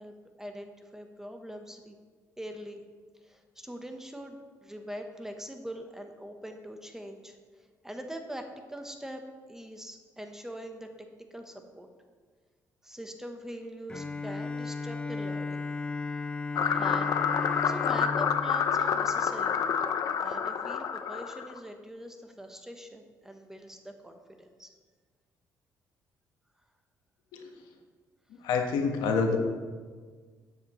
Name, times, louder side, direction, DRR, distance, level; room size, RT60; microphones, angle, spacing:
voice 1, 0.0-2.0 2.4-2.8 3.2-10.9 11.3-11.9 12.8-15.6 16.7-17.2 17.6-19.6 20.2-24.7, equal, 5° right, 5 dB, 0.9 m, -43 dB
Bowed string instrument, 13.9-19.8, left 4 dB, 15° left, 0.5 m, -36 dB
sound 1, 16.6-21.6, left 7 dB, 60° left, 0.7 m, -28 dB
voice 2, 28.4-29.4, left 5 dB, 85° left, 3 dB, 1.2 m, -27 dB
13.0 x 8.1 x 3.1 m, 1.5 s
cardioid pair, 100°, 7 cm